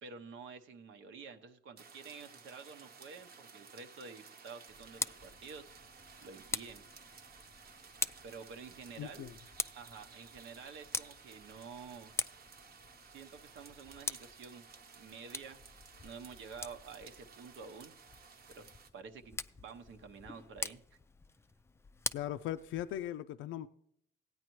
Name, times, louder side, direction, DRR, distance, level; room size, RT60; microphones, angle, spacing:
voice 1, 0.0-6.9 8.2-9.3 9.7-12.1 13.0-14.6 15.0-15.7 16.0-17.9 18.5-18.7 18.9-21.0, right 5 dB, 75° right, 0.9 m, -50 dB
sound 1, 1.8-18.9, right 5 dB, 50° right, 0.9 m, -56 dB
Tick, 4.7-23.1, left 3 dB, 15° left, 0.3 m, -44 dB
voice 2, 9.0-9.3 22.1-23.7, left 12 dB, 80° left, 0.4 m, -39 dB
16.5 x 9.3 x 3.1 m
cardioid pair, 90°, 20 cm